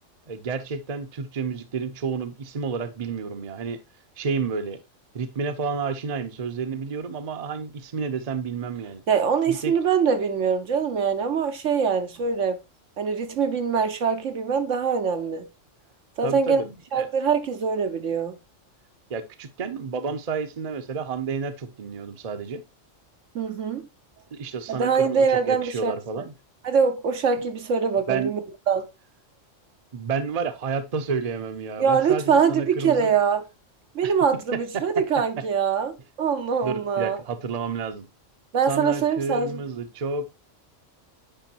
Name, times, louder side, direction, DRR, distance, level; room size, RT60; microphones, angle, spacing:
voice 1, 0.3-3.8 4.2-4.8 5.1-9.0 9.5-9.7 16.2-17.1 19.1-22.6 24.3-26.3 27.4-27.5 28.1-28.3 29.9-33.1 34.0-34.1 34.7-34.8 36.6-38.1 38.7-40.4, right 5 dB, 35° right, 0.8 m, -30 dB
voice 2, 9.1-12.6 13.0-15.5 16.2-16.6 16.9-18.4 23.3-23.8 24.7-26.2 26.6-28.4 28.7-28.9 31.8-33.4 33.9-37.2 38.5-39.6, right 6 dB, 75° right, 1.3 m, -23 dB
9.0 x 5.0 x 2.8 m
omnidirectional pair, 1.3 m